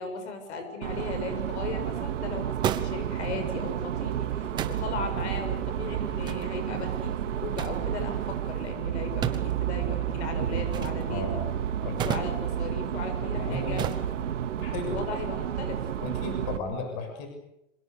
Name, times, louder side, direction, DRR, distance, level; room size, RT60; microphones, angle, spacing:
voice 1, 0.0-11.4 12.0-14.1 14.9-15.9, left 4 dB, 55° left, 7 dB, 7.1 m, -37 dB
sound 1, 0.8-16.6, right 10 dB, 65° right, 2.7 m, -31 dB
sound 2, 1.3-15.0, right 9 dB, 10° right, 1.0 m, -38 dB
voice 2, 11.1-11.5 11.8-12.2 13.3-13.8 14.6-15.0 16.0-17.3, left 3 dB, 35° left, 5 dB, 6.8 m, -35 dB
27.5 x 26.5 x 6.8 m, 0.81 s
hypercardioid pair, 170°, 39 cm